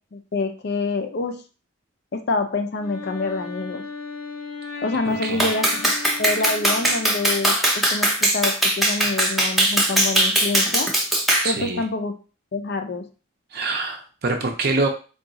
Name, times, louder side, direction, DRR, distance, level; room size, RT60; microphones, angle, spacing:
voice 1, 0.1-1.4 2.1-3.8 4.8-5.9 6.2-10.9 11.4-12.1 12.5-13.1, left 3 dB, 50° left, 7 dB, 0.5 m, -26 dB
Wind instrument woodwind instrument, 2.7-7.5, left 3 dB, 90° left, 1.5 m, -36 dB
voice 2, 5.1-5.5 11.4-11.8 13.5-14.9, right 3 dB, 50° right, 3 dB, 0.5 m, -25 dB
Clapping, 5.4-11.5, right 1 dB, ahead, 0.6 m, -20 dB
3.6 x 2.3 x 3.9 m, 0.35 s
head